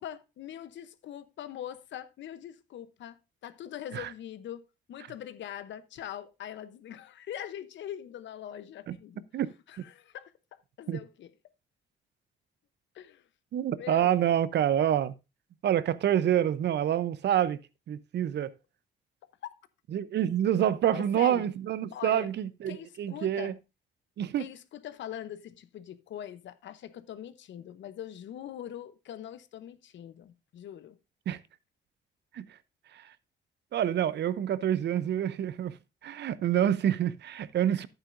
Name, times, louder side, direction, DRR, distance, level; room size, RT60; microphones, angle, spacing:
voice 1, 0.0-9.3 9.7-11.3 12.9-13.3 13.8-14.2 20.9-21.4 21.9-22.3 22.7-23.6 24.4-31.0, left 10 dB, 70° left, 0.8 m, -42 dB
voice 2, 13.5-15.1 15.6-17.6 17.9-18.5 19.9-23.5 24.2-24.5 31.3-31.4 32.3-32.5 32.9-33.0 33.7-35.7 36.0-37.9, right 10 dB, 60° right, 0.6 m, -27 dB
10.5 x 8.9 x 2.5 m
cardioid pair, 90°, 20 cm